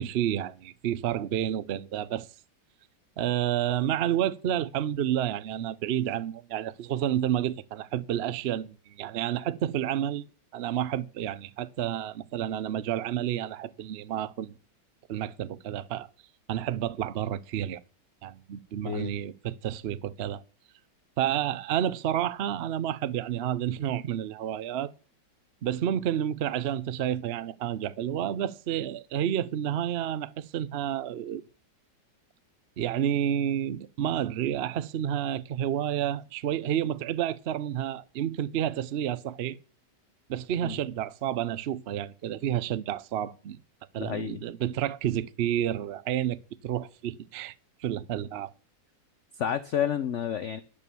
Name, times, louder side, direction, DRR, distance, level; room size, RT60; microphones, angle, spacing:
voice 1, 0.0-2.3 3.2-10.3 10.5-14.5 15.1-16.1 16.5-17.8 18.2-20.4 21.2-24.9 25.6-31.4 32.8-39.6 40.3-43.6 43.9-47.5 47.8-48.5, right 10 dB, 80° right, 0.5 m, -30 dB
voice 2, 44.0-44.4 49.3-50.6, left 9 dB, 65° left, 0.7 m, -30 dB
11.0 x 6.8 x 6.8 m
omnidirectional pair, 1.9 m